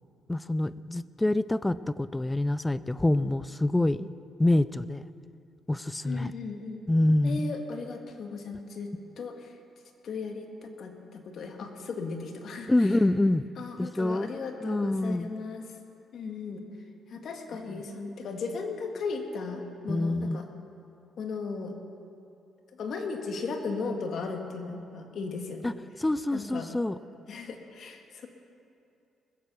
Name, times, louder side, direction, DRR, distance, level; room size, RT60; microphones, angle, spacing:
voice 1, 0.3-4.1 4.4-5.0 5.7-6.3 6.9-7.5 12.7-13.4 13.8-14.3 14.6-15.3 17.7-17.8 19.9-20.4 25.6-27.0, left 1 dB, 15° left, 17 dB, 0.4 m, -26 dB
voice 2, 6.0-6.8 7.2-8.9 9.2-9.5 10.0-12.9 13.6-15.6 16.1-16.6 17.1-20.5 21.2-21.7 22.7-25.7 26.3-26.7 27.3-28.3, left 4 dB, 60° left, 4 dB, 1.7 m, -36 dB
20.5 x 7.6 x 6.9 m, 2.6 s
cardioid pair, 90°, 0 cm